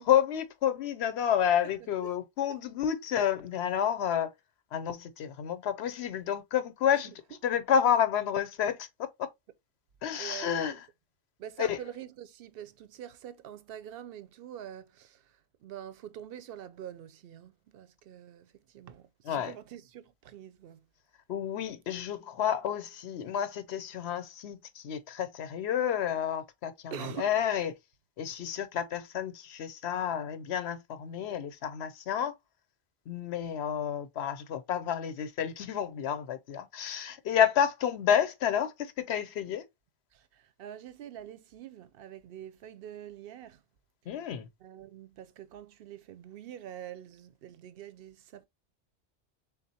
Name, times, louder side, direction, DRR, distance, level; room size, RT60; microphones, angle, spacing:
voice 1, 0.0-4.3 4.7-7.1 7.4-9.3 10.0-10.8 11.6-11.8 19.3-19.5 21.3-27.7 28.2-32.3 33.1-39.6 44.1-44.5, left 9 dB, 75° left, 0.9 m, -30 dB
voice 2, 10.2-10.8 11.4-20.9 26.9-27.3 40.1-43.6 44.6-48.5, right 10 dB, 65° right, 0.7 m, -45 dB
3.9 x 3.6 x 2.7 m
omnidirectional pair, 1.1 m